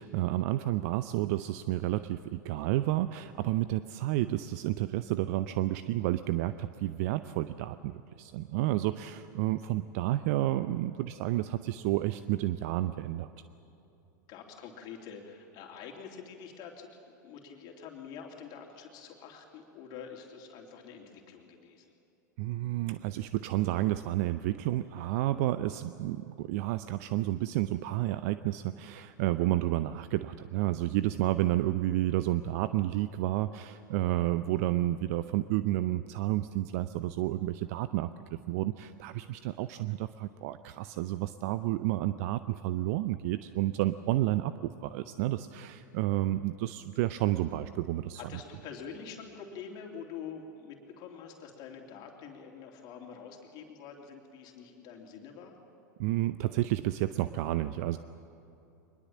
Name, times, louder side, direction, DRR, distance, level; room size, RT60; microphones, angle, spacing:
voice 1, 0.0-13.3 22.4-38.1 38.5-48.2 56.0-58.0, right 15 dB, 55° right, 13 dB, 0.6 m, -30 dB
voice 2, 14.3-21.9 48.1-55.5, left 6 dB, 45° left, 1 dB, 3.1 m, -46 dB
23.5 x 21.0 x 7.5 m, 2.9 s
hypercardioid pair, 95°, 10 cm